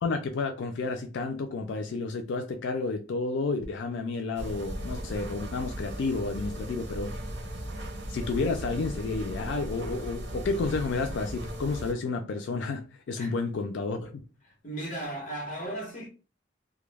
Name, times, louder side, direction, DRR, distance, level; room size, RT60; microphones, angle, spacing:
voice 1, 0.0-7.1 8.1-14.1, left 3 dB, 85° left, 0.4 m, -31 dB
sound 1, 4.4-11.9, equal, 85° right, 0.7 m, -37 dB
voice 2, 14.4-16.1, right 1 dB, 45° left, 0.9 m, -36 dB
2.2 x 2.0 x 3.1 m
head